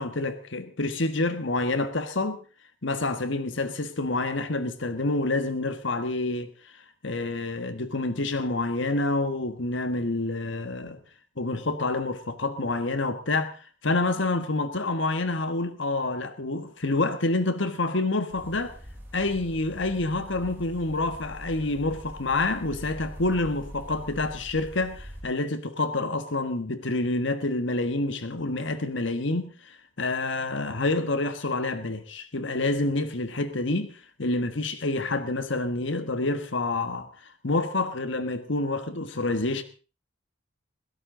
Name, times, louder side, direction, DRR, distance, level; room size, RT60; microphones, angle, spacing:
voice 1, 0.0-2.4 2.8-11.0 11.4-18.8 19.1-39.6, left 2 dB, 65° left, 1.5 m, -28 dB
sound 1, 18.3-25.2, equal, 10° right, 7.4 m, -43 dB
22.0 x 16.5 x 3.9 m
head